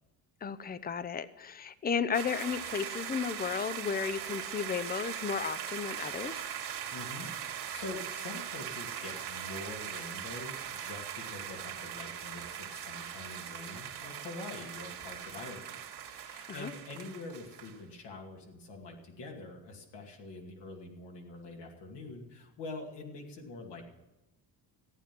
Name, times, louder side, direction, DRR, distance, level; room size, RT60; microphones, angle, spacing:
voice 1, 0.4-6.4 16.5-16.7, left 6 dB, 20° left, 15 dB, 0.6 m, -34 dB
sound 1, 2.1-17.8, right 9 dB, 70° right, 2.2 m, -40 dB
voice 2, 6.9-23.8, left 2 dB, 75° left, 0 dB, 2.5 m, -45 dB
15.0 x 9.2 x 6.0 m, 0.99 s
cardioid pair, 110°, 42 cm